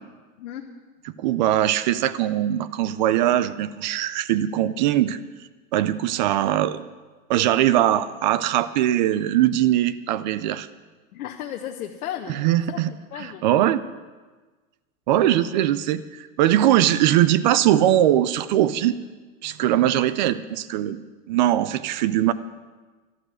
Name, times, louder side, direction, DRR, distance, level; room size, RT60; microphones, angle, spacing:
voice 1, 1.2-5.2 5.7-6.9 7.3-10.7 12.3-12.9 13.2-13.8 15.1-19.0 19.4-22.3, right 12 dB, 35° right, 16 dB, 0.4 m, -21 dB
voice 2, 11.1-12.4 12.7-13.5, left 10 dB, 70° left, 2 dB, 1.2 m, -34 dB
13.0 x 12.5 x 6.1 m, 1.3 s
supercardioid pair, 150°, 43 cm